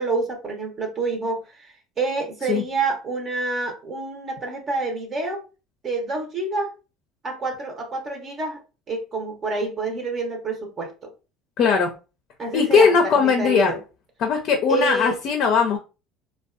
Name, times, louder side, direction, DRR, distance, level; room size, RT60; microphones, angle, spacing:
voice 1, 0.0-5.4 5.8-6.7 7.2-8.6 8.9-11.1 12.4-13.8 14.7-15.2, right 3 dB, 35° right, 0.7 m, -27 dB
voice 2, 11.6-11.9 12.5-13.7 14.2-15.8, left 6 dB, 55° left, 0.4 m, -19 dB
2.5 x 2.2 x 2.4 m
supercardioid pair, 105°, 0 cm